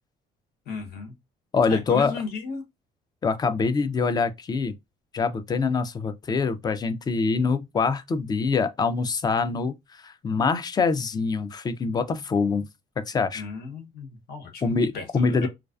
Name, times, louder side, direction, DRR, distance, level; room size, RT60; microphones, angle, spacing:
voice 1, 0.7-1.1 1.7-2.6 13.3-15.5, left 4 dB, 65° left, 1.0 m, -35 dB
voice 2, 1.5-2.1 3.2-4.7 5.1-9.7 10.0-12.7 13.1-13.4 14.6-15.5, left 4 dB, 25° left, 0.3 m, -24 dB
2.3 x 2.2 x 2.4 m
cardioid pair, 110°, 17 cm